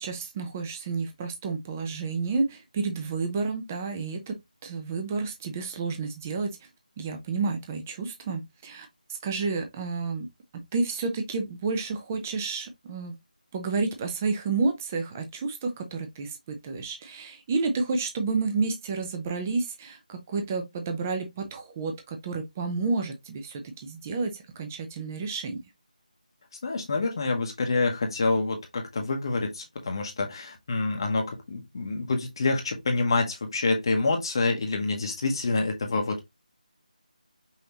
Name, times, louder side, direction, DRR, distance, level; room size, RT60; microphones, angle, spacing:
voice 1, 0.0-6.5 7.0-8.9 9.2-10.3 10.7-13.1 13.5-25.6, right 4 dB, 15° right, 0.6 m, -30 dB
voice 2, 26.6-36.2, left 3 dB, 35° left, 1.0 m, -27 dB
5.6 x 2.8 x 2.9 m
figure-of-eight pair, 165°, 5 cm